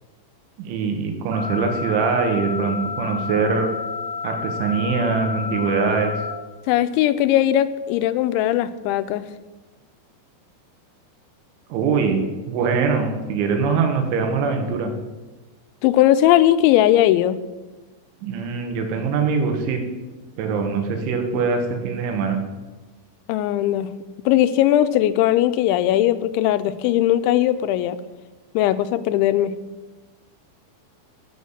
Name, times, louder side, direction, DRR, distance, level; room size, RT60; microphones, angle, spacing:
voice 1, 0.6-3.7 4.2-6.1 11.7-12.2 12.5-14.9 18.2-19.8 20.4-22.4, right 5 dB, 85° right, 5 dB, 3.8 m, -22 dB
sound 1, 1.3-6.3, left 5 dB, 55° right, 2.7 m, -30 dB
voice 2, 6.7-9.2 15.8-17.4 23.3-23.9 24.3-28.0 28.6-29.5, left 13 dB, 85° left, 12 dB, 2.9 m, -19 dB
10.5 x 7.4 x 7.2 m, 1.2 s
omnidirectional pair, 5.4 m